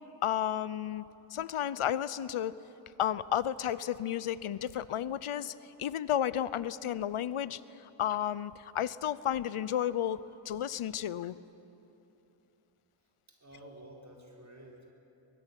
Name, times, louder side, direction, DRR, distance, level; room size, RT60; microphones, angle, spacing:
voice 1, 0.2-1.0 1.3-2.5 3.0-5.5 5.8-7.6 8.0-11.3, left 10 dB, 85° left, 17 dB, 0.7 m, -32 dB
voice 2, 13.3-14.9, right 1 dB, 35° right, -1 dB, 4.8 m, -51 dB
23.0 x 21.5 x 9.8 m, 3.0 s
wide cardioid pair, 90°, 49 cm